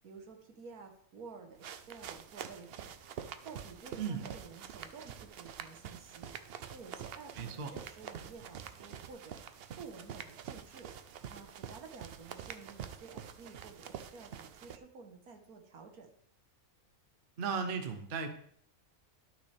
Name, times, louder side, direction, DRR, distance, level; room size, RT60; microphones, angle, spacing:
voice 1, 0.0-1.6 1.9-2.9 3.4-6.3 6.7-9.4 9.7-10.9 11.3-16.1, right 5 dB, 80° right, 4 dB, 1.7 m, -51 dB
sound 1, 1.6-14.8, right 8 dB, 65° right, 0.6 m, -46 dB
voice 2, 7.4-7.7 17.4-18.3, right 5 dB, 45° right, 7 dB, 0.9 m, -36 dB
12.5 x 6.0 x 3.4 m, 0.65 s
omnidirectional pair, 1.6 m